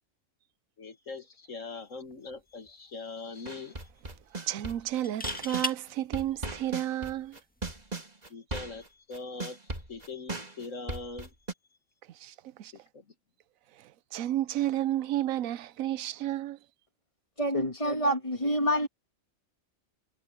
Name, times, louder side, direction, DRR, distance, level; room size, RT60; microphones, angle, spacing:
voice 1, 0.8-3.8 8.3-11.3 12.7-13.1, left 3 dB, 70° left, 2.2 m, -42 dB
sound 1, 2.1-2.3 2.7-2.8 4.9-5.8 7.6-7.8, equal, 5° left, 1.5 m, -35 dB
sound 2, 3.5-5.7 6.1-11.5, right 2 dB, 30° right, 3.0 m, -38 dB
voice 2, 4.3-7.4 12.1-12.7 13.8-16.6, right 13 dB, 90° right, 1.1 m, -32 dB
voice 3, 17.4-18.9, equal, 25° left, 2.0 m, -27 dB
omnidirectional pair, 1.4 m